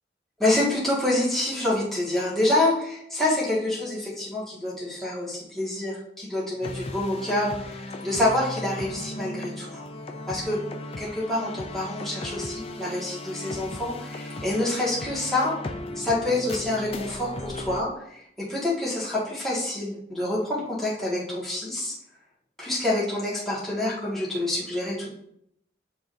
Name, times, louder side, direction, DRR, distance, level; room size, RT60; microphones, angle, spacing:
voice 1, 0.4-9.8 10.3-10.6 11.0-15.6 16.0-18.2 18.5-21.9 22.6-25.1, left 1 dB, ahead, -8 dB, 1.9 m, -27 dB
sound 1, 6.6-17.8, left 2 dB, 30° left, 0.5 m, -36 dB
9.3 x 3.8 x 2.7 m, 0.74 s
head